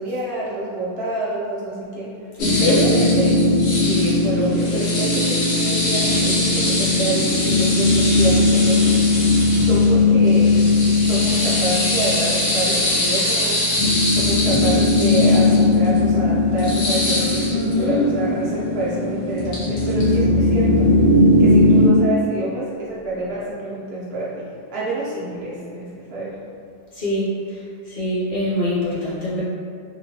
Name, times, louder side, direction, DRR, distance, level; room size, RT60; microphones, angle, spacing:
voice 1, 0.0-2.1 2.6-3.4 3.7-9.0 9.6-10.6 11.0-13.6 14.1-20.9 21.4-26.4, right 2 dB, 65° right, -7 dB, 0.7 m, -27 dB
sound 1, 2.4-21.9, left 2 dB, 85° left, 1.0 m, -18 dB
voice 2, 2.4-2.9 17.5-18.1 26.9-27.3 27.9-29.4, left 1 dB, 50° left, -10 dB, 0.8 m, -23 dB
3.0 x 2.2 x 2.7 m, 2.3 s
omnidirectional pair, 1.3 m